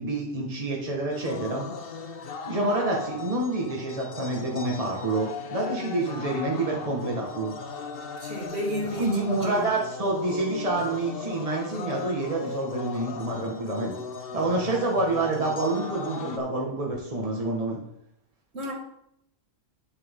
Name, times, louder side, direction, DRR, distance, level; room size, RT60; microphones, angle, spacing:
voice 1, 0.0-1.6 2.5-7.5 9.0-13.9 14.3-17.8, right 2 dB, 35° right, -1 dB, 1.7 m, -27 dB
sound 1, 1.1-16.4, left 5 dB, 60° left, 1.0 m, -38 dB
voice 2, 8.2-9.7 18.5-18.7, equal, 70° right, -2 dB, 2.4 m, -32 dB
10.0 x 7.1 x 3.7 m, 0.75 s
omnidirectional pair, 1.1 m